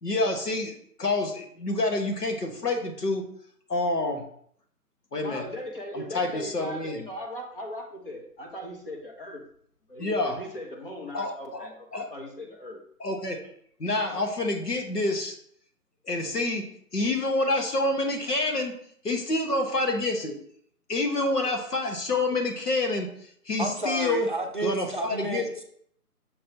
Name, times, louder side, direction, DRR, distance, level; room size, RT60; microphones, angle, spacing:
voice 1, 0.0-3.3 3.7-4.2 5.1-5.4 5.9-7.0 10.0-10.4 11.1-11.7 11.9-12.1 13.0-13.5 13.8-15.4 16.0-16.7 16.9-18.7 19.0-20.3 20.9-24.3 24.6-25.5, left 2 dB, 85° left, 3 dB, 1.6 m, -27 dB
voice 2, 5.2-9.4 9.9-12.8, equal, 35° left, 0 dB, 1.3 m, -38 dB
voice 3, 23.6-25.6, right 2 dB, 35° right, 1 dB, 0.6 m, -31 dB
6.5 x 5.3 x 3.0 m, 0.65 s
figure-of-eight pair, 170°, 46 cm